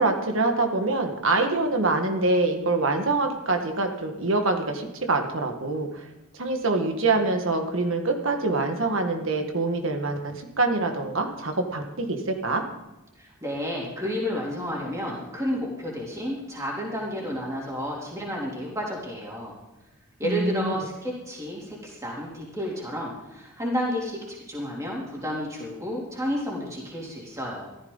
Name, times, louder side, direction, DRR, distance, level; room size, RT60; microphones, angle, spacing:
voice 1, 0.0-6.1 6.4-12.6 20.2-20.8, right 3 dB, 65° right, 4 dB, 1.7 m, -25 dB
voice 2, 13.2-19.5 20.2-27.7, equal, 15° right, -4 dB, 3.4 m, -31 dB
14.5 x 14.5 x 4.0 m, 1.0 s
head